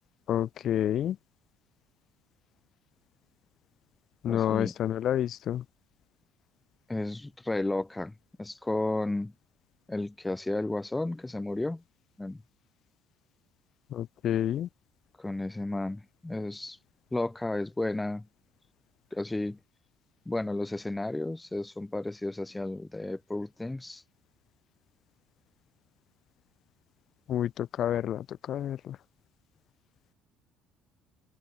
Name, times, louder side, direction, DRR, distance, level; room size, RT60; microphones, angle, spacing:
voice 1, 0.3-1.2 4.2-5.6 13.9-14.7 27.3-29.0, left 11 dB, 50° left, 0.8 m, -29 dB
voice 2, 4.2-4.7 6.9-9.3 9.9-11.8 12.2-12.4 15.2-16.8 17.1-18.3 19.1-19.6 20.2-24.0, left 2 dB, 10° left, 3.2 m, -33 dB
cardioid pair, 120°, 0 cm